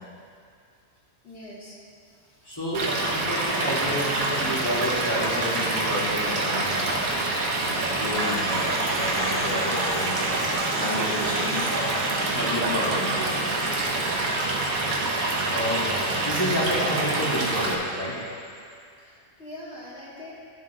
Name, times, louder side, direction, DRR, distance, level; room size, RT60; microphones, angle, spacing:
voice 1, 1.2-1.8 2.1-2.5 15.7-16.0 19.0-20.3, left 1 dB, 45° left, -6 dB, 2.2 m, -43 dB
voice 2, 2.4-7.0 7.9-10.3 10.7-11.9 12.3-13.8 15.5-15.8 16.2-18.1, equal, 15° left, -9 dB, 2.6 m, -30 dB
sound 1, 2.5-18.7, equal, 20° right, 1.5 m, -42 dB
Stream / Liquid, 2.7-17.7, right 2 dB, 90° right, 1.5 m, -26 dB
13.5 x 7.4 x 3.2 m, 2.3 s
omnidirectional pair, 1.4 m